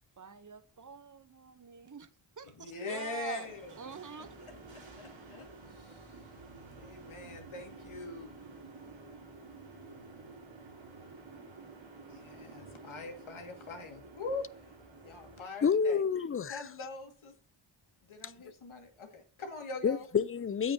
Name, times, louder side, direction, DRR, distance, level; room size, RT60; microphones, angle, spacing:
voice 1, 0.2-2.1 2.4-3.5 3.8-4.3, right 5 dB, 40° right, 1.0 m, -45 dB
voice 2, 2.5-3.7 4.4-5.5 5.7-6.1 6.8-8.7 12.1-14.4 15.0-16.0 16.5-17.3 18.1-20.1, left 3 dB, 80° left, 2.3 m, -43 dB
sound 1, 3.4-15.4, right 3 dB, 70° right, 3.0 m, -51 dB
voice 3, 15.6-16.7 19.8-20.7, left 6 dB, 30° left, 0.4 m, -29 dB
8.5 x 8.1 x 2.8 m
cardioid pair, 65°, 48 cm